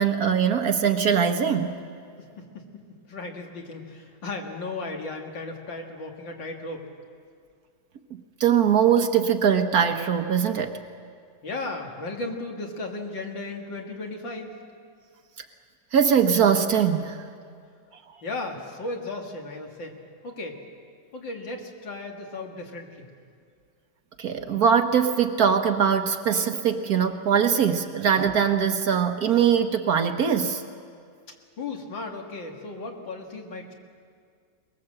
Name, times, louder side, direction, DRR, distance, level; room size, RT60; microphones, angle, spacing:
voice 1, 0.0-1.9 8.1-10.8 15.9-17.2 24.2-30.6, right 7 dB, 55° right, 7 dB, 1.4 m, -22 dB
voice 2, 2.2-6.9 11.4-14.5 18.2-20.0 20.2-20.6 21.1-23.1 31.6-33.7, left 2 dB, 75° left, 1 dB, 2.9 m, -35 dB
22.5 x 21.0 x 7.7 m, 2.2 s
omnidirectional pair, 2.1 m